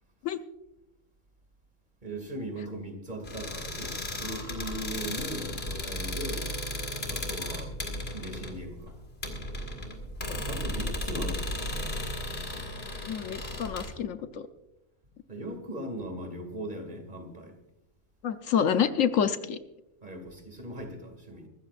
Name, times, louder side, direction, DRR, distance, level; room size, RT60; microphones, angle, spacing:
voice 1, 2.0-6.5 7.1-7.7 8.1-8.9 10.5-11.5 15.3-17.5 20.0-21.5, right 1 dB, 35° right, 5 dB, 2.4 m, -39 dB
sound 1, 3.2-13.9, left 1 dB, 45° left, 2.3 m, -35 dB
voice 2, 13.1-14.5 18.2-19.6, left 8 dB, 70° left, 9 dB, 1.1 m, -28 dB
23.5 x 14.0 x 2.5 m, 0.91 s
omnidirectional pair, 1.4 m